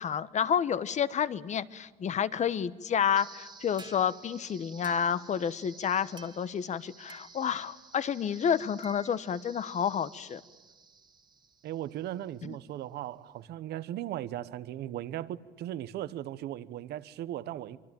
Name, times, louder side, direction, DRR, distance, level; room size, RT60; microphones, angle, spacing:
voice 1, 0.0-10.4 12.4-12.6, left 8 dB, 45° left, 1.2 m, -30 dB
sound 1, 3.2-12.2, right 4 dB, 25° right, 2.0 m, -53 dB
voice 2, 11.6-17.8, right 12 dB, 75° right, 1.2 m, -37 dB
25.0 x 24.5 x 9.1 m
cardioid pair, 110°, 17 cm